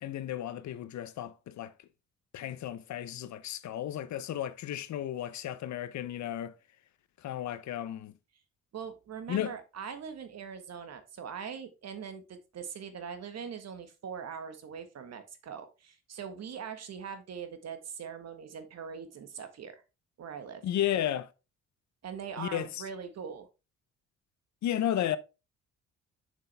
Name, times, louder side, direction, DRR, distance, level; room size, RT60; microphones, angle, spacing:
voice 1, 0.0-1.7 2.3-6.5 7.2-8.1 9.3-9.5 20.6-21.3 22.4-22.8 24.6-25.2, left 11 dB, 65° left, 0.8 m, -33 dB
voice 2, 8.7-19.8 20.2-20.6 22.0-23.5, right 7 dB, 60° right, 1.5 m, -42 dB
6.9 x 6.1 x 3.4 m
cardioid pair, 90°, 30 cm